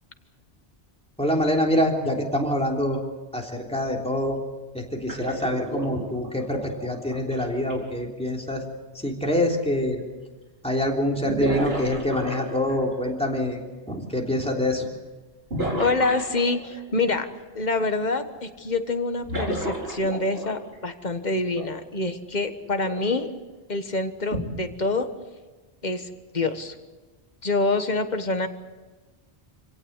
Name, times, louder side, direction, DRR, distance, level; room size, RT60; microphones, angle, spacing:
voice 1, 1.2-3.0 3.3-4.4 4.7-8.6 8.9-10.0 10.6-13.6 13.9-14.8, left 1 dB, 5° left, 0 dB, 3.4 m, -25 dB
sound 1, 5.1-7.7 9.7-9.8 11.3-13.0 15.5-16.8 19.2-20.7 21.5-21.7 22.8-23.0 24.3-24.4, right 1 dB, 60° right, 4.7 m, -32 dB
voice 2, 15.8-17.3 17.5-23.3 23.7-25.1 25.8-26.7 27.4-28.5, left 3 dB, 40° left, 8 dB, 1.5 m, -26 dB
26.5 x 17.0 x 8.2 m, 1.2 s
omnidirectional pair, 1.1 m